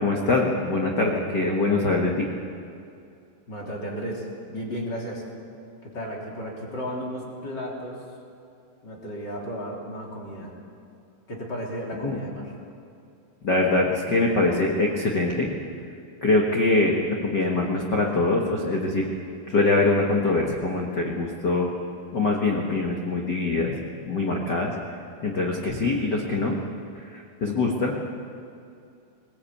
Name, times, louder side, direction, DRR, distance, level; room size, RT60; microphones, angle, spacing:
voice 1, 0.0-2.3 12.0-12.2 13.4-15.5 16.2-17.0 17.2-19.1 19.5-21.7 22.1-23.8 24.0-26.6 26.9-27.9, left 2 dB, 70° left, 0 dB, 1.0 m, -23 dB
voice 2, 3.5-5.2 5.8-8.0 8.8-10.5 11.3-12.5, equal, 30° left, -2 dB, 3.4 m, -34 dB
20.5 x 18.0 x 8.6 m, 2.5 s
omnidirectional pair, 4.7 m